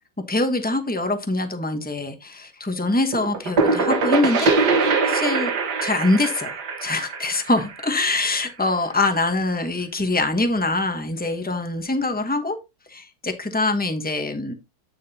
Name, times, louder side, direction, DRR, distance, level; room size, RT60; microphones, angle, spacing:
voice 1, 0.3-4.5 4.8-5.5 5.8-6.5 6.8-12.6 12.9-14.6, left 2 dB, 15° left, 0.3 m, -24 dB
sound 1, 3.1-8.7, right 4 dB, 55° right, 1.8 m, -23 dB
8.8 x 7.4 x 2.8 m
omnidirectional pair, 2.2 m